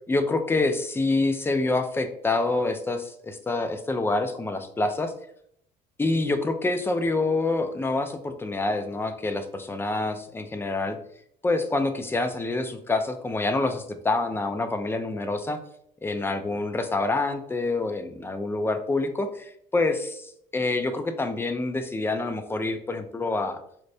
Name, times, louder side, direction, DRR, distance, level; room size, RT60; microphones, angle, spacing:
voice 1, 0.1-5.1 6.0-11.0 11.4-15.6 16.0-23.6, left 2 dB, 15° left, 8 dB, 0.3 m, -27 dB
4.3 x 2.1 x 2.6 m, 0.69 s
cardioid pair, 110°, 17 cm